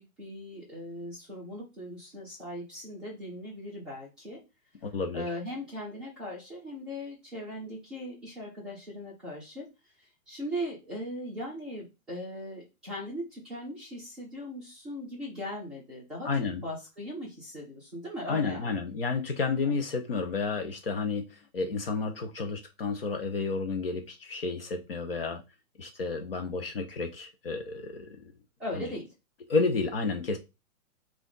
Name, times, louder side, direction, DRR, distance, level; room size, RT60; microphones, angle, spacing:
voice 1, 0.0-4.4 5.1-18.8 19.6-19.7 28.6-29.1, left 1 dB, ahead, -10 dB, 0.8 m, -39 dB
voice 2, 4.8-5.2 16.2-16.6 18.3-25.4 25.8-28.3 28.8-28.9 29.5-30.4, left 4 dB, 40° left, 5 dB, 0.7 m, -31 dB
5.5 x 2.5 x 3.9 m, 0.26 s
hypercardioid pair, 170°, 44 cm